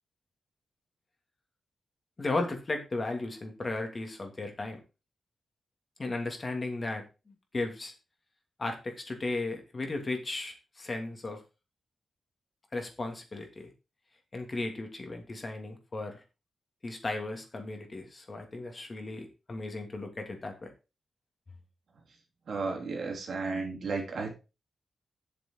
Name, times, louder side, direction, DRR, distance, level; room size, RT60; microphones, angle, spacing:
voice 1, 2.2-4.8 6.0-7.0 7.5-7.9 8.6-11.4 12.7-13.7 14.3-16.2 16.8-20.7, left 2 dB, 35° left, 3 dB, 2.7 m, -35 dB
voice 2, 22.5-24.3, right 4 dB, 70° right, 1 dB, 2.9 m, -33 dB
7.8 x 6.8 x 4.6 m, 0.29 s
cardioid pair, 80°, 0 cm